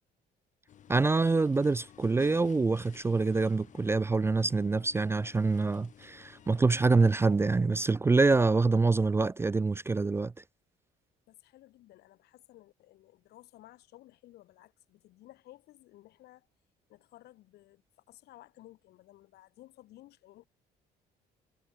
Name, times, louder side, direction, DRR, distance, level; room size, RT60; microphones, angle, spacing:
sound 1, 0.7-7.1, left 9 dB, 45° left, 1.1 m, -54 dB
voice 1, 0.9-10.4, right 3 dB, 15° right, 0.3 m, -26 dB
voice 2, 11.3-16.5 16.9-17.8 18.1-20.4, left 16 dB, 75° left, 1.4 m, -56 dB
cardioid pair, 110°, 17 cm